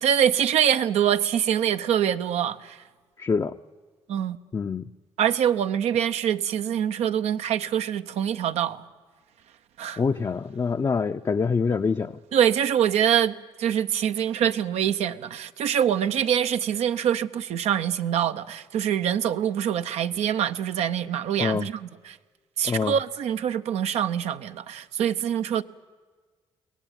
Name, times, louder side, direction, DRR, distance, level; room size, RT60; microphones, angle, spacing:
voice 1, 0.0-2.8 4.1-4.4 5.2-8.8 9.8-10.0 12.3-22.2 22.6-25.6, right 9 dB, 75° right, 0.7 m, -24 dB
voice 2, 3.2-3.5 4.5-4.9 10.0-12.2 21.4-21.7 22.7-23.0, left 5 dB, 35° left, 0.6 m, -25 dB
23.0 x 18.0 x 9.1 m
supercardioid pair, 60°, 11 cm